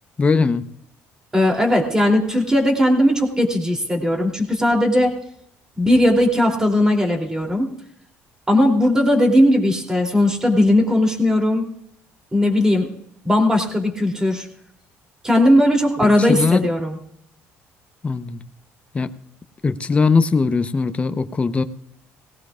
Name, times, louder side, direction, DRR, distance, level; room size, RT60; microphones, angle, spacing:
voice 1, 0.2-0.7 16.0-16.7 18.0-18.5 18.9-19.1 19.6-21.6, left 4 dB, 25° left, 10 dB, 0.7 m, -20 dB
voice 2, 1.3-5.1 5.8-7.7 8.5-11.6 12.3-12.9 13.2-14.5 15.2-17.0, left 1 dB, 15° right, 1 dB, 2.9 m, -18 dB
19.0 x 17.0 x 2.4 m, 0.71 s
cardioid pair, 105°, 5 cm